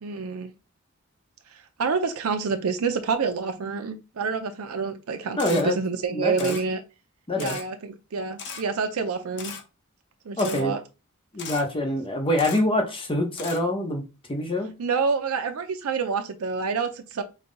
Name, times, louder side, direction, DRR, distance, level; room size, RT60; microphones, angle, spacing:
voice 1, 0.0-0.5 1.5-6.8 7.4-9.5 10.2-10.8 14.8-17.2, right 5 dB, 80° right, 6 dB, 0.5 m, -28 dB
Camera, 5.4-5.6 6.4-6.6 7.4-7.6 8.4-8.6 9.4-9.6 10.4-10.6 11.4-11.6 12.4-12.6 13.4-13.6, left 6 dB, 55° left, 0.9 m, -36 dB
voice 2, 5.4-5.8 6.1-6.5 7.3-7.6 10.4-10.7 11.3-14.0 14.3-14.7, left 1 dB, 25° left, 4 dB, 0.8 m, -25 dB
5.4 x 2.2 x 3.8 m, 0.29 s
head